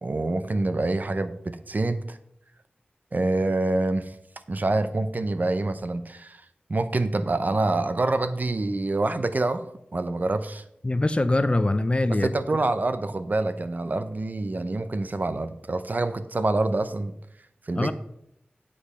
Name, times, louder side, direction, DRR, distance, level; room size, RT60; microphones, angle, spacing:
voice 1, 0.0-2.2 3.1-4.1 4.5-6.4 6.7-9.6 9.9-10.6 12.1-17.1 17.7-17.9, right 2 dB, 50° right, 11 dB, 0.6 m, -26 dB
voice 2, 10.8-12.3 17.8-17.9, left 2 dB, 30° left, 12 dB, 0.5 m, -23 dB
8.6 x 5.0 x 5.6 m, 0.77 s
wide cardioid pair, 70°, 4 cm